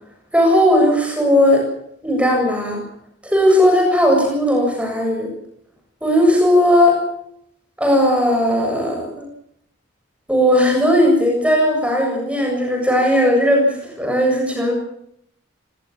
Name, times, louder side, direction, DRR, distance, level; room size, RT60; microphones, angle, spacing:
voice 1, 0.3-1.7 2.0-2.8 3.2-5.3 6.0-7.0 7.8-9.3 10.3-14.7, equal, 5° right, 1 dB, 7.4 m, -16 dB
25.0 x 19.5 x 7.2 m, 0.72 s
head